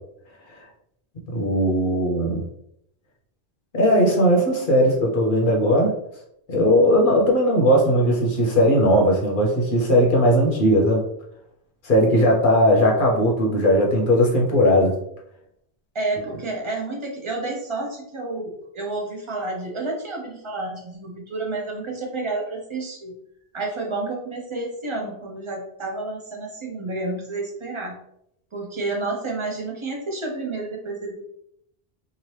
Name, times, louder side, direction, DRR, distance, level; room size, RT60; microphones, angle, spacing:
voice 1, 1.3-2.4 3.7-5.9 6.5-11.0 11.8-15.0, equal, 55° left, -1 dB, 0.8 m, -18 dB
voice 2, 15.9-23.1 23.5-28.0 28.5-31.2, right 2 dB, 30° right, 0 dB, 0.7 m, -30 dB
2.8 x 2.6 x 3.1 m, 0.74 s
omnidirectional pair, 1.1 m